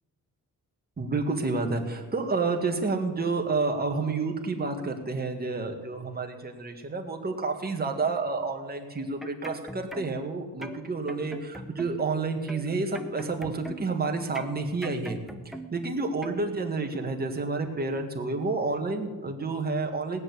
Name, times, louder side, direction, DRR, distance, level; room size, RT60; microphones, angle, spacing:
voice 1, 1.0-15.2 15.7-20.2, right 3 dB, 25° right, 2 dB, 1.8 m, -29 dB
sound 1, 9.0-10.3 10.6-12.1 12.5-14.0 14.3-15.9 16.2-16.4, right 1 dB, ahead, 0.8 m, -41 dB
19.0 x 6.6 x 9.7 m, 1.3 s
wide cardioid pair, 165°, 35 cm